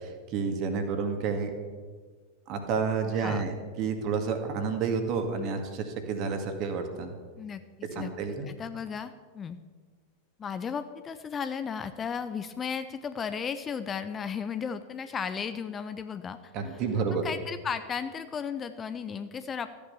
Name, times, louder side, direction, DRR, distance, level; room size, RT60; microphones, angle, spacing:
voice 1, 0.0-1.5 2.5-7.1 8.0-8.5 16.5-17.3, right 5 dB, 40° right, 6 dB, 2.0 m, -30 dB
voice 2, 3.2-3.5 7.4-8.1 8.4-9.6 10.4-16.8 17.1-19.7, left 6 dB, 20° left, 11 dB, 0.7 m, -35 dB
14.0 x 8.9 x 7.0 m, 1.5 s
figure-of-eight pair, 90°, 0 cm